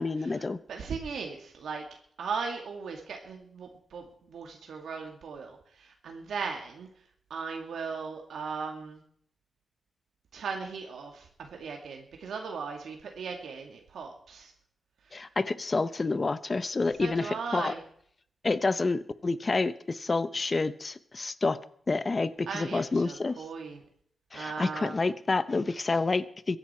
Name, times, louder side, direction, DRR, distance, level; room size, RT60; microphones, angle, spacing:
voice 1, 0.0-0.6 15.1-17.7 18.4-21.6 21.9-23.4 24.3-26.6, left 3 dB, 25° left, 14 dB, 0.7 m, -28 dB
voice 2, 0.7-1.8 2.2-4.0 4.3-5.6 6.0-6.9 7.3-9.0 10.3-14.5 17.0-17.8 22.5-23.8 24.3-24.9, right 5 dB, 75° right, 2 dB, 2.1 m, -37 dB
23.0 x 10.5 x 4.4 m, 0.63 s
wide cardioid pair, 175°, 0 cm